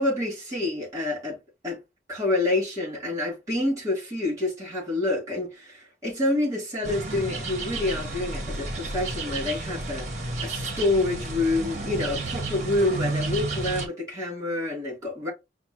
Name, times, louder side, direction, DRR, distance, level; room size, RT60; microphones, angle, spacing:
voice 1, 0.0-1.4 1.6-1.8 2.1-10.1 10.4-15.3, left 2 dB, 20° right, 2.8 m, -27 dB
sound 1, 6.8-13.9, right 3 dB, 40° right, 1.1 m, -31 dB
5.1 x 2.6 x 2.8 m
head